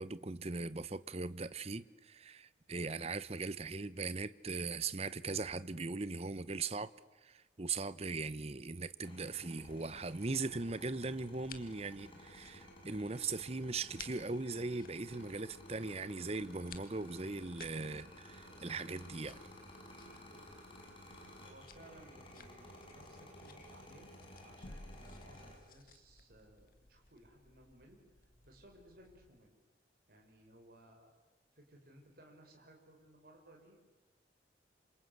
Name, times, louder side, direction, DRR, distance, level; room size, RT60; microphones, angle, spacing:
voice 1, 0.0-6.9 7.2-19.4, right 3 dB, 35° right, 0.8 m, -39 dB
sound 1, 9.0-25.6, left 1 dB, 30° left, 6.1 m, -55 dB
sound 2, 9.6-29.3, left 4 dB, 50° left, 1.9 m, -59 dB
voice 2, 21.4-24.1 24.4-28.0 28.4-29.5 30.1-31.1 31.5-33.9, right 1 dB, 50° right, 5.6 m, -60 dB
27.0 x 27.0 x 8.0 m
head